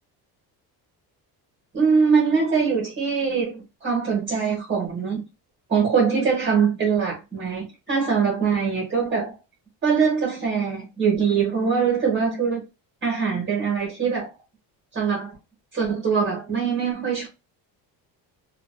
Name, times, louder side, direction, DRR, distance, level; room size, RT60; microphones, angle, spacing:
voice 1, 1.7-5.2 5.7-9.3 9.8-12.6 13.0-14.3 14.9-15.3 15.7-17.3, right 6 dB, 30° right, 1.0 m, -22 dB
2.5 x 2.2 x 2.3 m
cardioid pair, 160°, 41 cm